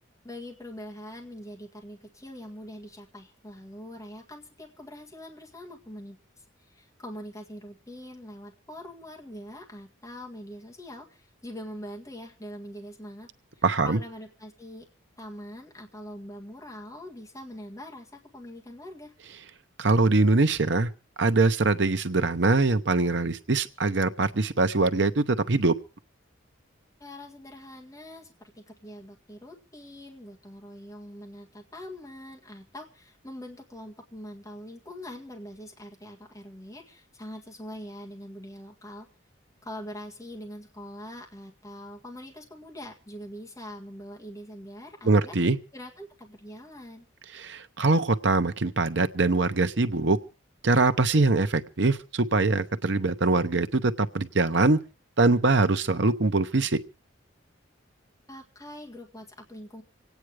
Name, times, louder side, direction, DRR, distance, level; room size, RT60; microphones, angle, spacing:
voice 1, 0.2-13.3 13.6-14.9 15.2-19.1 27.0-39.1 39.6-45.4 45.7-47.1 58.3-59.8, left 1 dB, 15° left, 0 dB, 1.8 m, -43 dB
voice 2, 13.6-14.0 19.8-20.9 21.2-25.8 45.0-45.6 47.3-50.2 50.6-54.8 55.2-56.8, right 3 dB, 65° right, 9 dB, 0.9 m, -23 dB
25.5 x 9.3 x 4.8 m, 0.34 s
head